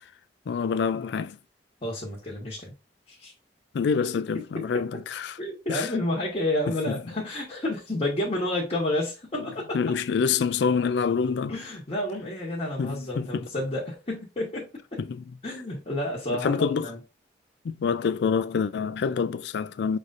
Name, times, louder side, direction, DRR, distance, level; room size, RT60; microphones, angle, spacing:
voice 1, 0.5-1.4 3.7-5.4 5.7-5.9 6.9-7.0 9.4-9.5 9.7-11.5 12.8-13.4 15.0-15.2 16.3-16.9 17.6-20.0, left 6 dB, 70° left, 0.4 m, -26 dB
voice 2, 1.8-2.7 3.1-3.3 4.5-5.0 5.4-9.8 11.5-15.0 15.4-17.0, left 1 dB, 40° left, 1.2 m, -30 dB
5.3 x 3.1 x 2.5 m
head